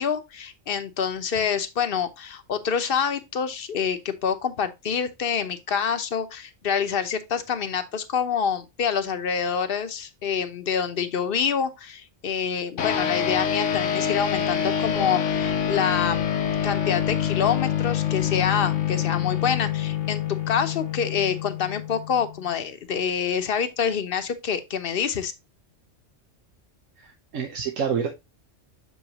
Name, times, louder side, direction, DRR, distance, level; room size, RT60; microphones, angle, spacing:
voice 1, 0.0-16.3 16.6-25.3, left 7 dB, 50° left, 1.0 m, -26 dB
sound 1, 12.8-22.5, left 9 dB, 70° left, 1.2 m, -26 dB
voice 2, 27.0-28.1, right 7 dB, 85° right, 1.3 m, -28 dB
6.8 x 5.6 x 2.8 m
omnidirectional pair, 1.3 m